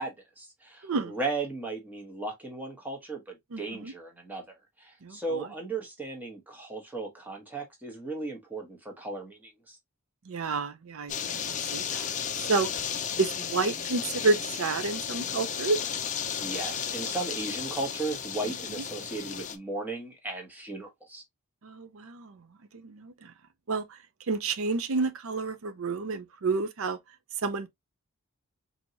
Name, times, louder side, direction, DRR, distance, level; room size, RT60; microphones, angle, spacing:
voice 1, 0.0-4.4 4.8-9.8 16.4-21.2, right 3 dB, 10° right, 1.1 m, -36 dB
voice 2, 0.8-1.1 3.5-3.9 5.0-5.5 10.3-11.1 11.5-12.1 12.4-12.7 13.2-15.8 21.6-22.4 22.7-23.3 23.7-24.0 24.3-27.0 27.4-27.7, right 3 dB, 75° right, 0.5 m, -30 dB
sound 1, 11.1-19.6, left 8 dB, 35° left, 0.5 m, -34 dB
4.5 x 2.8 x 2.7 m
head